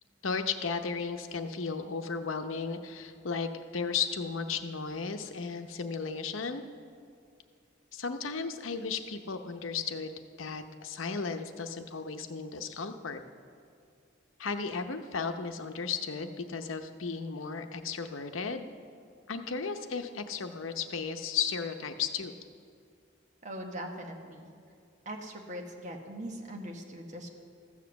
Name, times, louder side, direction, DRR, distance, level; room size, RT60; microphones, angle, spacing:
voice 1, 0.2-6.6 7.9-13.2 14.4-18.7 19.3-22.3, left 5 dB, 85° left, 7 dB, 0.8 m, -35 dB
voice 2, 23.4-24.5 25.0-27.3, equal, 40° right, 2 dB, 1.2 m, -41 dB
14.5 x 7.4 x 6.9 m, 2.3 s
head